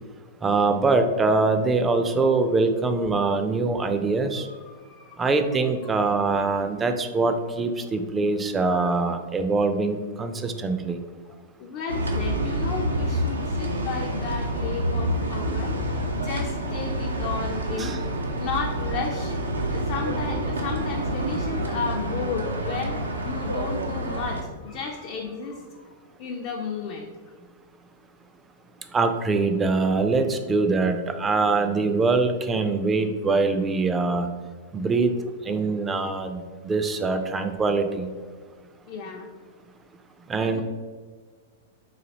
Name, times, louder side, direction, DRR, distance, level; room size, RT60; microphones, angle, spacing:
voice 1, 0.4-4.5 5.2-11.0 17.8-18.0 28.9-34.3 34.7-35.1 35.5-38.1 40.3-40.6, right 3 dB, 20° right, 7 dB, 0.4 m, -23 dB
voice 2, 4.4-5.3 5.8-5.9 8.6-8.9 11.3-11.4 11.6-17.9 18.3-19.4 19.7-23.0 23.3-25.9 26.2-27.1 38.9-39.3 40.5-40.6, left 5 dB, 50° left, 1 dB, 0.4 m, -33 dB
sound 1, 11.9-24.4, right 1 dB, 85° right, 0.4 m, -28 dB
4.0 x 2.6 x 2.9 m, 1.5 s
figure-of-eight pair, 100°, 0 cm